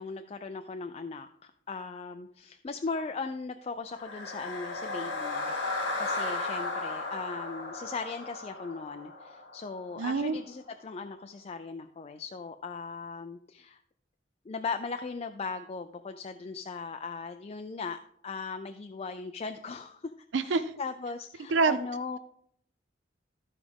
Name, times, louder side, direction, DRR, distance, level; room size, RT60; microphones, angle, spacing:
voice 1, 0.0-13.8 14.5-18.0 18.2-20.1 20.4-22.2, left 4 dB, 35° left, 7 dB, 0.4 m, -38 dB
sound 1, 3.9-10.1, left 2 dB, 70° left, 2.0 m, -35 dB
voice 2, 10.0-10.4 20.3-20.7 21.5-21.8, right 4 dB, 75° right, 11 dB, 0.5 m, -26 dB
14.5 x 4.9 x 3.5 m, 0.68 s
head